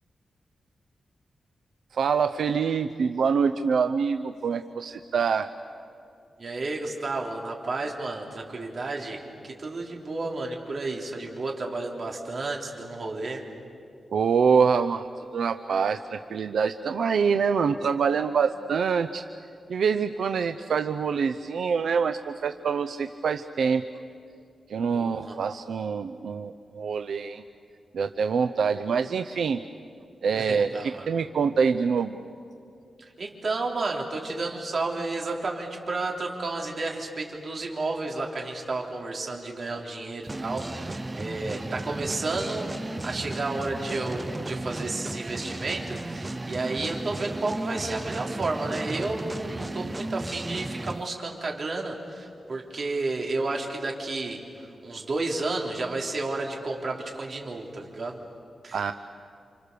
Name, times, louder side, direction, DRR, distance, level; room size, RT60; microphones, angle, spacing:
voice 1, 1.9-5.5 14.1-15.1 15.3-19.2 19.7-23.8 24.7-27.4 27.9-29.6 30.2-32.2 58.7-58.9, right 6 dB, 85° right, 8 dB, 0.6 m, -25 dB
voice 2, 6.4-13.4 24.9-25.4 30.3-31.1 33.2-58.2 58.6-58.9, right 3 dB, 50° right, 0 dB, 3.4 m, -32 dB
sound 1, 40.3-51.0, right 2 dB, 20° right, 0.7 m, -34 dB
29.5 x 27.0 x 6.8 m, 2.5 s
wide cardioid pair, 140°, 0 cm